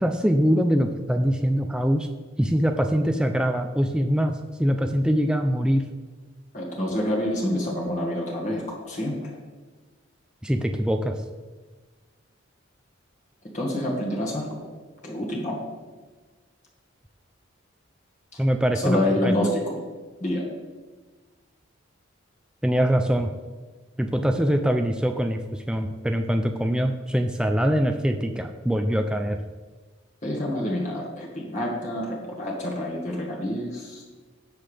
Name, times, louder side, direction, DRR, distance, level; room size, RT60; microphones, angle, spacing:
voice 1, 0.0-2.1 2.4-5.8 10.4-11.1 18.4-19.3 22.6-23.3 24.0-29.4, equal, 5° right, 5 dB, 0.4 m, -23 dB
voice 2, 6.5-9.3 13.5-14.6 15.0-15.6 18.8-19.8 20.2-20.4 30.2-34.1, left 1 dB, 35° left, -3 dB, 1.8 m, -27 dB
16.5 x 5.8 x 3.5 m, 1.3 s
head